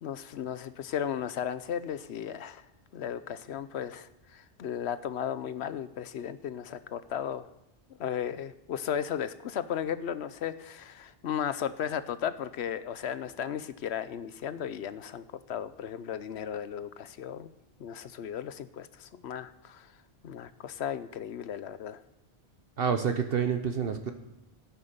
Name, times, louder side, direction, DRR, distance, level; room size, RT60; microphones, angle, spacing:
voice 1, 0.0-2.6 2.9-7.5 8.0-17.5 17.8-19.9 20.2-22.0, left 9 dB, 90° left, 13 dB, 1.0 m, -35 dB
voice 2, 22.8-24.1, right 7 dB, 65° right, 7 dB, 1.0 m, -28 dB
13.5 x 9.5 x 6.7 m, 0.87 s
omnidirectional pair, 1.1 m